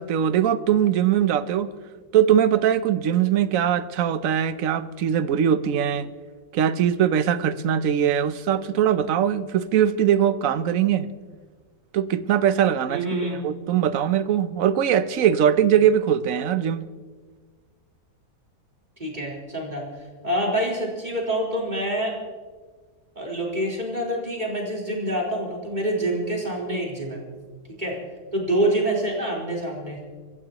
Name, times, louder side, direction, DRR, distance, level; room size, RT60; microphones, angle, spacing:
voice 1, 0.0-1.7 2.1-6.1 6.5-11.1 11.9-13.0 13.3-16.9, right 9 dB, 65° right, 14 dB, 1.1 m, -21 dB
voice 2, 12.9-13.4 19.0-19.8 20.2-22.2 23.2-27.2 27.7-28.0 28.3-30.0, right 1 dB, 30° right, -3 dB, 4.2 m, -26 dB
25.5 x 14.5 x 3.0 m, 1.5 s
omnidirectional pair, 1.7 m